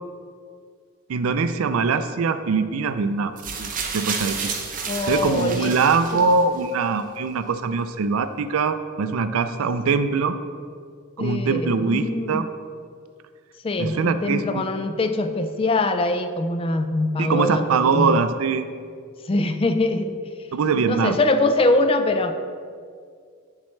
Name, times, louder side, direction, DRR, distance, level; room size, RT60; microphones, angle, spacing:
voice 1, 1.1-4.5 5.0-10.4 11.2-12.5 13.8-14.6 17.2-18.6 20.5-21.2, right 4 dB, 75° right, 11 dB, 0.4 m, -22 dB
sound 1, 3.4-6.6 7.5-7.6, right 5 dB, 40° right, 0.7 m, -31 dB
voice 2, 4.9-5.7 11.2-12.4 13.6-18.2 19.2-20.2 20.9-22.3, left 2 dB, 25° left, 8 dB, 0.4 m, -23 dB
7.4 x 7.3 x 3.2 m, 2.1 s
head